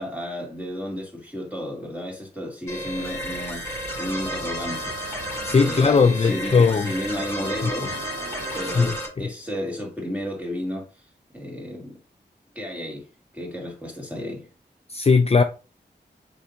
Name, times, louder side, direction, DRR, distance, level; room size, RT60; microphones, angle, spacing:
voice 1, 0.0-3.7 3.9-4.9 5.6-8.0 8.5-10.9 11.3-12.0 12.6-13.0 13.3-14.5, equal, 10° right, 2.2 m, -32 dB
sound 1, 2.7-9.1, equal, 15° left, 1.8 m, -32 dB
sound 2, 2.9-9.0, right 4 dB, 75° right, 0.6 m, -41 dB
voice 2, 5.4-6.9 8.7-9.3 14.9-15.4, left 5 dB, 35° left, 0.4 m, -19 dB
4.6 x 3.3 x 2.8 m
cardioid pair, 45°, 19 cm